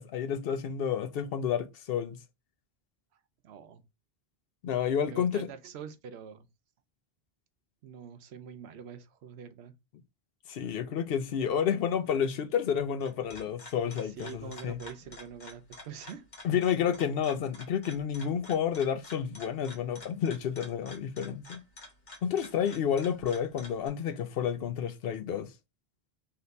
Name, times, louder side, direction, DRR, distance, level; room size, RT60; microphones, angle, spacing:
voice 1, 0.0-2.2 4.6-5.5 10.5-14.8 16.4-21.6 22.2-25.5, left 8 dB, 70° left, 0.7 m, -30 dB
voice 2, 3.4-3.8 5.0-6.5 7.8-9.7 14.0-16.3, right 7 dB, 80° right, 0.9 m, -45 dB
sound 1, 13.0-23.9, left 2 dB, 45° left, 1.1 m, -50 dB
3.5 x 2.9 x 3.9 m
omnidirectional pair, 1.1 m